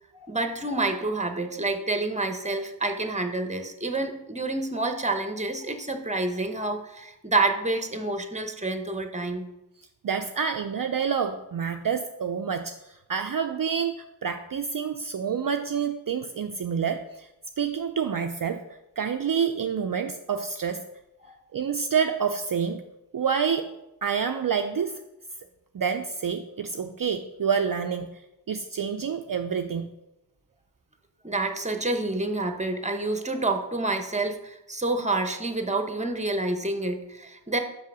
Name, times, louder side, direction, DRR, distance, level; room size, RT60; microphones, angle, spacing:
voice 1, 0.1-9.4 21.2-21.4 31.2-37.6, right 2 dB, 15° right, 6 dB, 1.0 m, -28 dB
voice 2, 10.0-17.3 17.6-18.6 19.0-20.8 21.5-22.8 23.1-23.7 24.0-25.0 25.7-28.2 28.5-29.9, right 6 dB, 55° right, 6 dB, 0.5 m, -28 dB
5.6 x 5.5 x 6.1 m, 0.93 s
wide cardioid pair, 40°, 42 cm